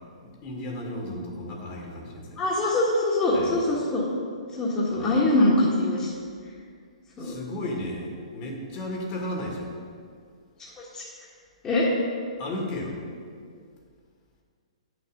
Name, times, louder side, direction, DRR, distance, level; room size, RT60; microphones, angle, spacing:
voice 1, 0.2-2.5 3.3-3.6 4.9-5.2 7.2-9.7 12.4-13.0, left 1 dB, 35° left, -1 dB, 2.0 m, -34 dB
voice 2, 2.4-4.0 4.5-6.1 7.2-7.3 10.8-11.0 11.6-11.9, left 2 dB, 20° left, -6 dB, 1.7 m, -23 dB
9.0 x 6.8 x 5.4 m, 2.1 s
hypercardioid pair, 125°, 4 cm